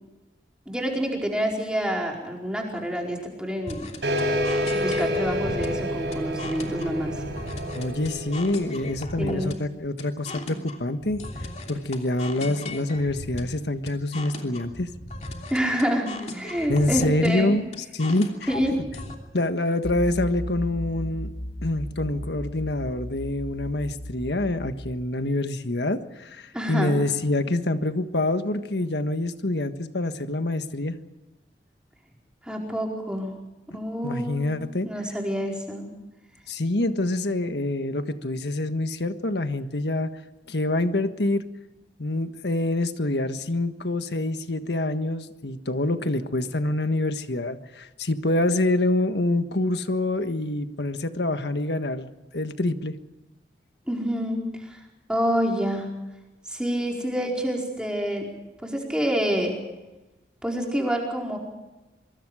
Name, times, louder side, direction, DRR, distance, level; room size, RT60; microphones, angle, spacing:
voice 1, 0.7-3.9 4.8-7.2 9.2-9.5 15.5-17.6 18.5-18.8 26.5-27.0 32.4-33.3 33.7-34.5 34.8-35.9 53.9-54.8 55.1-55.9 56.5-58.3 58.6-59.5 60.4-61.4, equal, 5° right, 0 dB, 4.6 m, -27 dB
sound 1, 3.7-19.1, left 1 dB, 40° left, 3.0 m, -38 dB
sound 2, 4.0-9.1, equal, 80° right, 6.7 m, -28 dB
voice 2, 7.7-11.2 11.7-14.9 16.7-17.6 17.9-18.8 19.3-21.3 21.6-31.0 34.0-34.9 36.5-40.1 40.5-41.4 42.0-52.9, left 2 dB, 80° left, 9 dB, 1.5 m, -26 dB
sound 3, 19.8-25.0, equal, 55° left, 2.1 m, -35 dB
25.0 x 24.5 x 5.0 m, 1.1 s
head